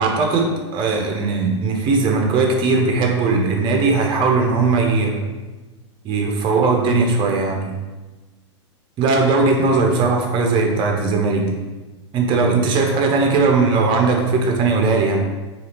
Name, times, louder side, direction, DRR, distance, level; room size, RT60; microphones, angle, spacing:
voice 1, 0.0-5.2 6.0-7.7 9.0-11.6 12.1-15.2, right 3 dB, 30° right, 2 dB, 0.5 m, -18 dB
2.7 x 2.4 x 3.3 m, 1.2 s
hypercardioid pair, 115°, 15 cm